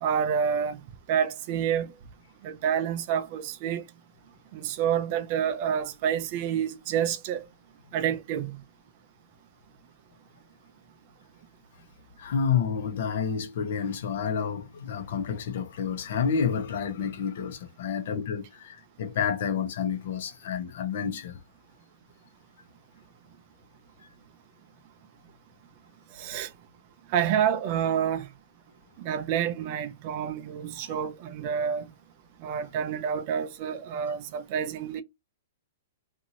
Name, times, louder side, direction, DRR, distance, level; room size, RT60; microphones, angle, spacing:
voice 1, 0.0-0.8 1.1-1.9 2.4-3.8 4.5-7.4 7.9-8.6 26.2-26.5 27.1-28.3 29.0-31.9 32.4-35.0, right 8 dB, 40° right, 0.4 m, -28 dB
voice 2, 12.2-21.4 24.0-24.1 30.9-31.1, left 7 dB, 60° left, 0.8 m, -29 dB
2.8 x 2.6 x 2.7 m
hypercardioid pair, 155°, 0 cm